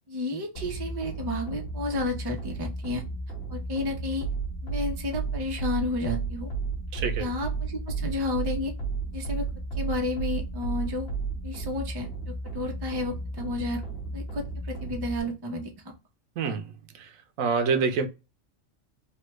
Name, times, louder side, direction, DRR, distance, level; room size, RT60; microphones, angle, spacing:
voice 1, 0.1-3.0 3.5-4.3 4.6-6.5 7.2-8.7 9.1-9.5 9.8-11.1 11.4-13.8 14.1-15.7 16.5-16.6, left 2 dB, 25° right, 0.5 m, -31 dB
sound 1, 0.5-15.2, right 4 dB, 50° left, 1.2 m, -33 dB
voice 2, 6.9-7.3 16.4-17.1 17.4-18.1, right 5 dB, 85° right, 1.0 m, -27 dB
3.3 x 2.2 x 3.0 m
omnidirectional pair, 1.4 m